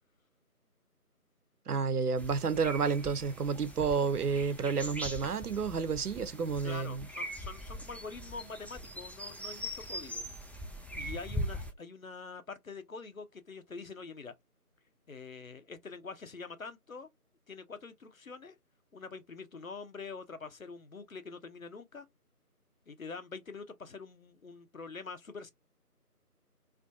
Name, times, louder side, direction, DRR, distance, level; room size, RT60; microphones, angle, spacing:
voice 1, 1.7-7.0, right 5 dB, 70° right, 0.6 m, -30 dB
sound 1, 2.2-11.7, equal, 5° left, 0.4 m, -41 dB
voice 2, 6.6-10.2 10.9-14.3 15.1-17.1 17.5-18.6 18.9-22.1 22.9-25.5, left 4 dB, 60° left, 0.5 m, -45 dB
2.4 x 2.2 x 2.4 m
figure-of-eight pair, 170°, 47 cm